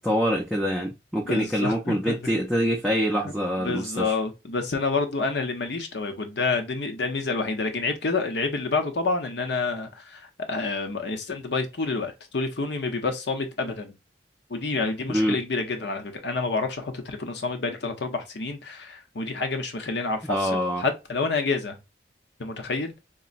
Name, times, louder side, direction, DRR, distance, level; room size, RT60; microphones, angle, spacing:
voice 1, 0.0-4.1 15.1-15.4 20.2-20.8, equal, ahead, 0.4 m, -25 dB
voice 2, 1.2-2.3 3.2-13.9 14.5-21.8 22.4-22.9, left 3 dB, 70° left, 0.7 m, -28 dB
3.8 x 2.1 x 2.4 m
head